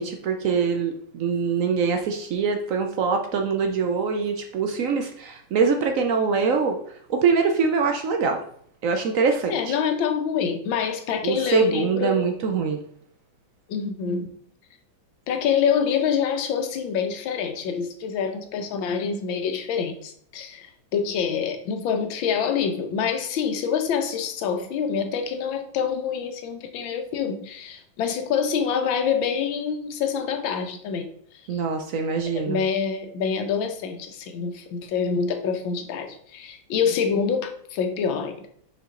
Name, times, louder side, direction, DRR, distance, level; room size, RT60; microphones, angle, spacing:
voice 1, 0.0-6.8 7.1-8.4 8.8-9.7 11.2-12.8 31.5-32.6, right 5 dB, 75° right, 5 dB, 0.7 m, -24 dB
voice 2, 9.5-12.2 13.7-14.3 15.3-31.1 31.5-31.6 32.3-38.5, left 6 dB, 80° left, 6 dB, 1.6 m, -26 dB
5.3 x 4.9 x 3.7 m, 0.63 s
omnidirectional pair, 2.1 m